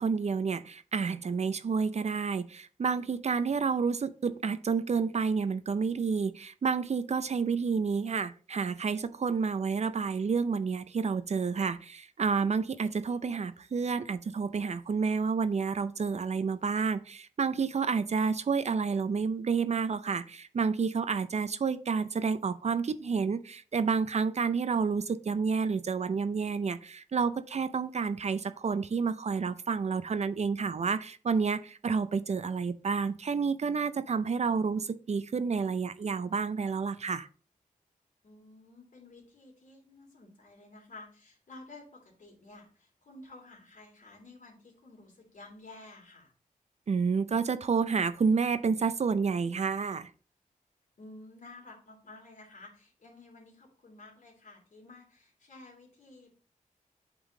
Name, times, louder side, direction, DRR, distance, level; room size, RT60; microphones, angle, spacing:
voice 1, 0.0-37.3 46.9-50.1, right 5 dB, 50° right, 12 dB, 0.5 m, -30 dB
voice 2, 38.2-46.3 51.0-56.4, left 2 dB, 65° left, 0 dB, 2.6 m, -52 dB
8.0 x 3.8 x 3.7 m, 0.42 s
wide cardioid pair, 85°, 14 cm